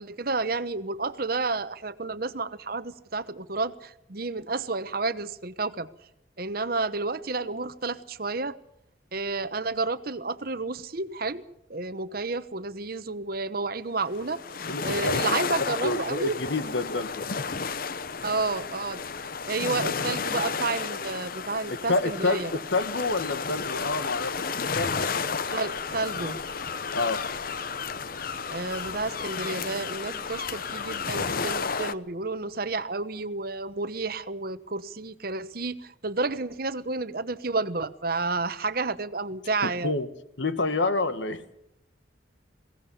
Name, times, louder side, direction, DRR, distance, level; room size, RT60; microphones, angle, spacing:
voice 1, 0.0-5.9 6.4-8.6 9.1-11.4 11.7-14.4 14.8-16.4 18.2-19.0 19.5-22.5 25.5-26.4 28.5-39.9, right 3 dB, 50° right, 13 dB, 1.0 m, -31 dB
sound 1, 14.1-31.9, left 5 dB, 45° left, 0.7 m, -32 dB
voice 2, 14.7-15.4 15.8-17.2 21.9-25.1 26.9-27.2 39.6-40.1 40.4-41.4, left 3 dB, 70° left, 11 dB, 1.6 m, -28 dB
22.0 x 17.5 x 7.1 m, 0.79 s
head